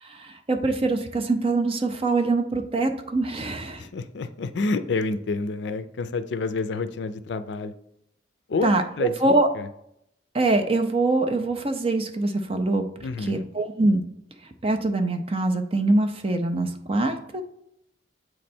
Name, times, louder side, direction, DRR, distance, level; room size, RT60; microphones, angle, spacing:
voice 1, 0.0-3.9 8.6-9.5 10.3-12.8 13.2-14.0 14.6-17.4, right 2 dB, 30° right, 6 dB, 0.5 m, -24 dB
voice 2, 3.8-7.7 8.5-9.7 13.0-13.4, left 3 dB, 70° left, 11 dB, 0.4 m, -29 dB
7.7 x 3.2 x 4.3 m, 0.75 s
head